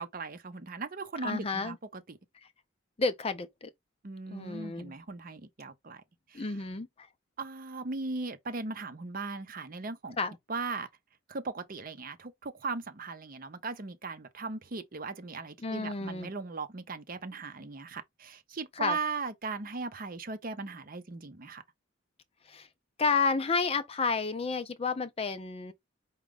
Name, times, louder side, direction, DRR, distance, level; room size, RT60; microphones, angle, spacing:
voice 1, 0.0-2.2 4.0-6.0 6.3-6.6 7.4-10.2 10.5-10.9 11.3-21.6, right 4 dB, 45° right, 0.6 m, -38 dB
voice 2, 1.2-1.8 3.0-3.7 4.3-4.9 6.3-7.1 10.2-10.4 15.6-16.3 18.8-19.0 22.5-22.7 23.0-25.7, left 4 dB, 30° left, 0.5 m, -31 dB
5.0 x 2.3 x 3.5 m
head